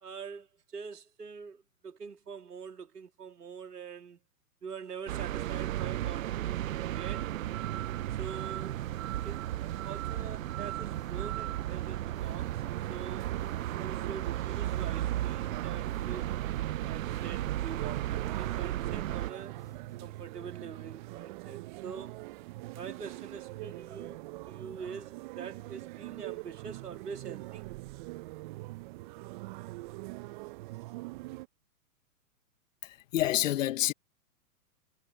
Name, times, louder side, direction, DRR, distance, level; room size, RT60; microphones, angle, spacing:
voice 1, 0.0-4.2 4.6-7.3 8.1-8.8 9.2-12.6 12.9-13.3 13.8-16.3 16.8-19.5 20.0-22.2 22.7-24.2 24.5-27.6, right 6 dB, 85° right, 2.9 m, -45 dB
sound 1, 5.1-19.3, right 13 dB, 60° right, 0.8 m, -34 dB
sound 2, 10.3-20.2, left 4 dB, 5° left, 2.4 m, -61 dB
sound 3, 12.2-31.5, right 21 dB, 30° right, 0.7 m, -43 dB
voice 2, 32.8-33.9, left 14 dB, 55° left, 1.3 m, -28 dB
hypercardioid pair, 125°, 46 cm